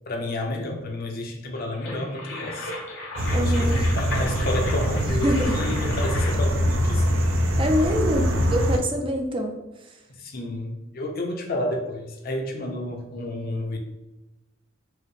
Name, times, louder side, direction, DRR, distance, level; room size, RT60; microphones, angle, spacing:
voice 1, 0.1-2.7 3.4-7.1 10.1-13.8, left 1 dB, 45° left, 2 dB, 0.6 m, -30 dB
sound 1, 1.6-6.5, left 2 dB, 65° left, 1.0 m, -35 dB
sound 2, 3.2-8.8, equal, 70° right, 0.6 m, -23 dB
voice 2, 3.3-3.8 5.2-5.6 7.6-9.6, equal, 25° right, 3 dB, 0.4 m, -25 dB
4.8 x 2.1 x 3.1 m, 0.99 s
head